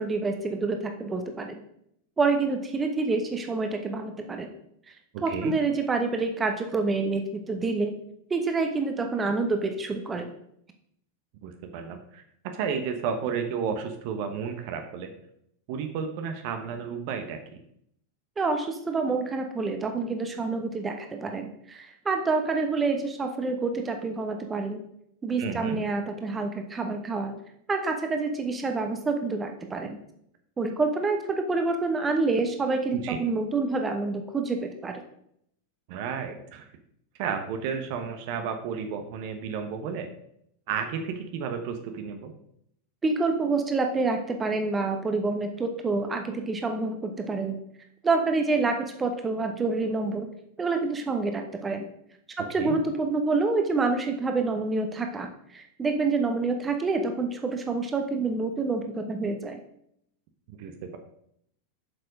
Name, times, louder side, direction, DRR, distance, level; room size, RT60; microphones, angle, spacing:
voice 1, 0.0-1.6 2.2-4.5 5.2-7.9 8.3-10.3 18.4-24.8 25.2-27.3 27.7-30.0 30.6-35.0 43.0-47.6 48.0-50.3 50.6-51.9 52.4-59.6, right 3 dB, 15° right, 5 dB, 1.2 m, -27 dB
voice 2, 5.1-5.5 11.4-12.2 12.5-15.1 15.7-17.6 25.4-25.8 32.9-33.2 35.9-36.6 37.2-40.1 40.7-42.3 52.6-52.8 60.5-61.0, right 6 dB, 45° right, 6 dB, 1.1 m, -32 dB
7.9 x 6.8 x 4.9 m, 0.72 s
figure-of-eight pair, 90°, 0 cm